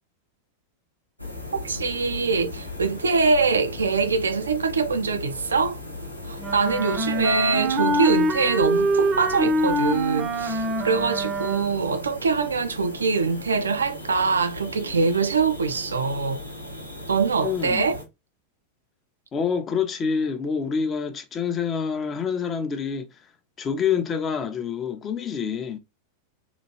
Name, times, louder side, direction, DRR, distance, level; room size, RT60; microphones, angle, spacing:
sound 1, 1.2-18.0, left 1 dB, 90° left, 0.8 m, -38 dB
voice 1, 1.5-5.8 6.2-16.4 17.1-18.0, right 4 dB, 70° right, 0.4 m, -23 dB
Wind instrument woodwind instrument, 6.4-11.9, right 1 dB, 25° right, 0.6 m, -25 dB
voice 2, 17.4-17.8 19.3-23.1 23.6-25.8, left 6 dB, 25° left, 0.5 m, -27 dB
2.9 x 2.4 x 2.8 m
figure-of-eight pair, 90°, 0 cm